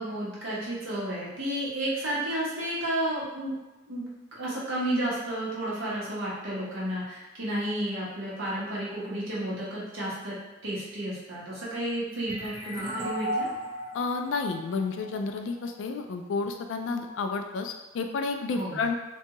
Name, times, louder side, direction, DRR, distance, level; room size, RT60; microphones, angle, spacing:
voice 1, 0.0-3.6 3.9-10.4 10.6-13.5 18.5-18.9, right 1 dB, 85° right, -7 dB, 1.1 m, -32 dB
sound 1, 12.3-15.7, equal, 20° right, 0.5 m, -35 dB
voice 2, 13.9-18.9, left 4 dB, 75° left, 5 dB, 0.3 m, -31 dB
2.6 x 2.3 x 2.9 m, 1.1 s
head